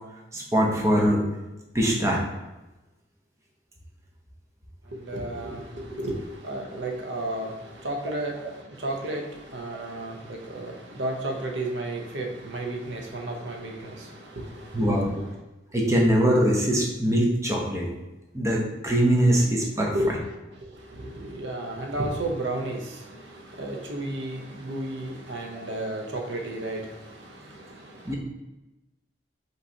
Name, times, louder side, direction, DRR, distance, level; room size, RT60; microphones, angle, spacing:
voice 1, 0.3-1.2 1.7-2.2 9.7-9.8 14.7-15.1 15.7-17.9 18.3-19.9 28.0-28.1, equal, 15° right, -2 dB, 0.8 m, -22 dB
voice 2, 4.9-15.3 19.6-19.7 19.9-20.2 20.6-28.1, right 1 dB, 80° right, 2 dB, 0.8 m, -33 dB
5.3 x 3.1 x 2.8 m, 1.0 s
head